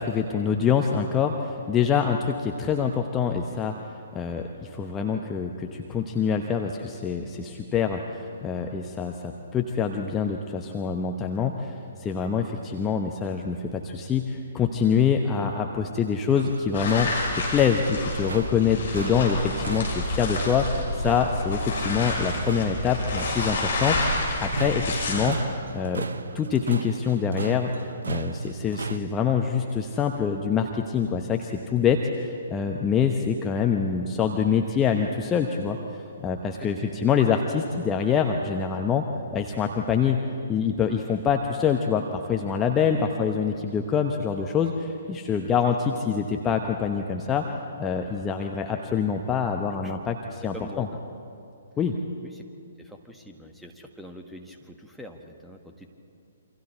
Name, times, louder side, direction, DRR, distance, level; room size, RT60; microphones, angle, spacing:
voice 1, 0.0-3.7 4.1-11.7 12.0-25.4 25.7-26.1 26.3-27.7 28.1-35.8 36.2-39.0 39.3-40.2 40.5-47.4 47.8-50.9 51.8-52.0, left 7 dB, 15° left, 3 dB, 1.0 m, -25 dB
sound 1, 16.3-29.0, right 4 dB, 65° right, 0.8 m, -36 dB
sound 2, 16.7-25.3, left 2 dB, 55° left, 6.5 m, -29 dB
voice 2, 36.6-37.1 42.8-43.2 45.4-45.6 49.8-50.0 50.5-51.0 52.2-52.4 52.8-55.9, left 1 dB, ahead, 3 dB, 1.5 m, -44 dB
28.5 x 25.0 x 4.5 m, 2.5 s
figure-of-eight pair, 125°, 0 cm